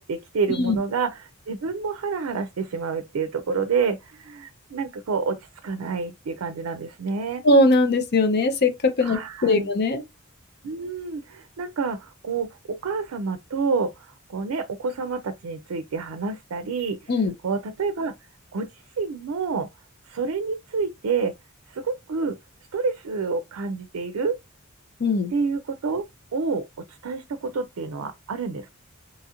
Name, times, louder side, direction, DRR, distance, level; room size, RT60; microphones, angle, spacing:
voice 1, 0.0-7.4 9.0-9.7 10.6-17.1 17.4-18.1 18.5-19.7 20.1-21.3 21.7-22.4 22.7-24.4 25.3-26.0 26.3-28.7, right 5 dB, 80° right, 0.4 m, -28 dB
voice 2, 7.4-10.0 17.1-17.3 25.0-25.3, left 2 dB, 50° left, 0.6 m, -20 dB
2.9 x 2.4 x 2.8 m
head